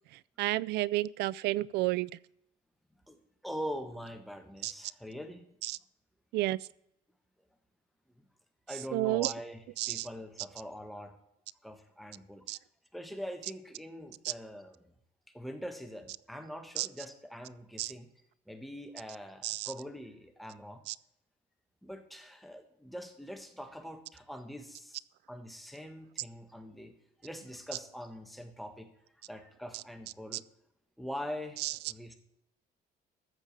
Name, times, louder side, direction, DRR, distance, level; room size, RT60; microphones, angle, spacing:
voice 1, 0.4-2.1 4.6-4.7 5.6-5.8 6.3-6.7 8.9-9.3 9.8-10.1 12.5-12.6 14.2-14.3 16.8-16.9 17.8-17.9 19.4-19.7 20.9-21.0 30.3-30.4 31.6-31.7, right 18 dB, 80° right, 0.4 m, -31 dB
voice 2, 3.4-5.5 8.2-8.3 8.7-11.2 11.6-12.4 12.9-14.9 15.3-18.1 18.5-20.8 21.8-25.0 25.3-26.9 27.2-28.9 29.3-30.4 31.0-32.2, equal, ahead, 1.4 m, -43 dB
14.0 x 5.2 x 7.4 m
cardioid pair, 110°, 17 cm